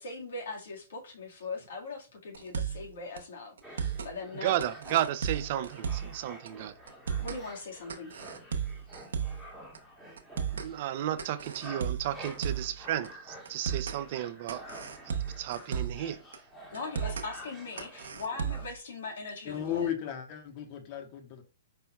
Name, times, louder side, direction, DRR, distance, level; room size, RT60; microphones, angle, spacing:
voice 1, 0.0-4.6 7.2-8.1 16.7-19.9, left 3 dB, 70° left, 1.8 m, -40 dB
sound 1, 2.3-2.9 3.2-3.3 3.6-4.1 4.6-6.2 6.5-6.6 6.9-7.4 7.9-9.5 9.7-9.8 10.2-10.7 11.2-12.8 13.0-13.1 13.5-14.0 14.5-16.1 16.3-16.4 16.7-17.3 17.8-18.7, right 7 dB, 75° right, 0.8 m, -34 dB
sound 2, 3.6-18.7, right 1 dB, 5° left, 1.6 m, -49 dB
voice 2, 4.3-6.7 10.5-14.7 15.1-16.2, right 12 dB, 50° right, 0.5 m, -33 dB
voice 3, 19.4-21.4, left 9 dB, 40° left, 1.2 m, -35 dB
5.2 x 4.3 x 2.3 m
hypercardioid pair, 130°, 0 cm